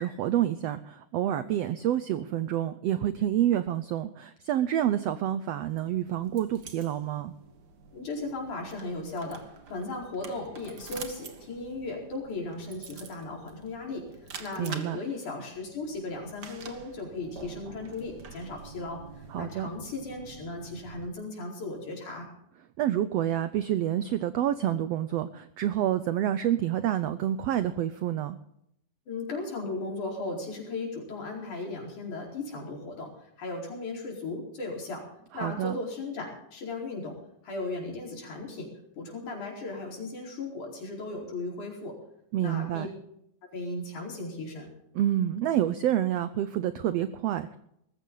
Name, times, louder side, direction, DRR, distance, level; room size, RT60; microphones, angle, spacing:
voice 1, 0.0-7.3 14.6-15.0 19.3-19.7 22.8-28.4 35.3-35.8 42.3-42.9 44.9-47.6, right 11 dB, 85° right, 12 dB, 1.4 m, -28 dB
sound 1, 5.7-21.1, right 5 dB, 45° right, 1.4 m, -47 dB
voice 2, 7.9-22.3 29.1-35.0 35.3-37.2 37.4-42.0 42.4-42.9 43.5-44.7, left 3 dB, 65° left, -1 dB, 6.0 m, -36 dB
20.0 x 15.0 x 3.9 m, 0.75 s
omnidirectional pair, 3.7 m